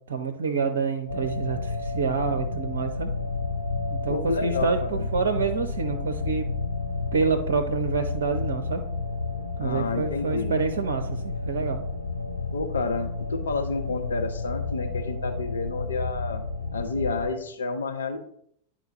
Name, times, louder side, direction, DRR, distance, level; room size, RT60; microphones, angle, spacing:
voice 1, 0.1-3.1 3.9-6.5 7.1-8.8 9.6-11.8, right 5 dB, 60° right, 7 dB, 0.6 m, -27 dB
sound 1, 1.1-17.3, left 3 dB, 85° left, 0.7 m, -31 dB
voice 2, 4.1-5.1 9.6-10.6 12.5-16.4 16.7-18.2, left 3 dB, 70° left, 4 dB, 1.0 m, -30 dB
10.5 x 4.2 x 3.0 m, 0.68 s
figure-of-eight pair, 90°, 0 cm